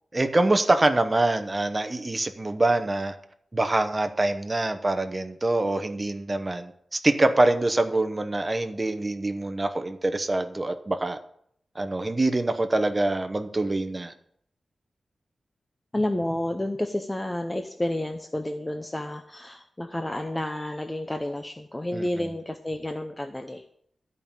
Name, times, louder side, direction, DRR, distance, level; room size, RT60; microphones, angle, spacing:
voice 1, 0.1-3.2 3.5-11.2 11.7-14.1 21.9-22.3, right 2 dB, 20° right, 8 dB, 0.8 m, -25 dB
voice 2, 15.9-23.8, left 1 dB, 10° left, 6 dB, 0.6 m, -30 dB
13.5 x 5.4 x 8.8 m, 0.69 s
wide cardioid pair, 180°, 0 cm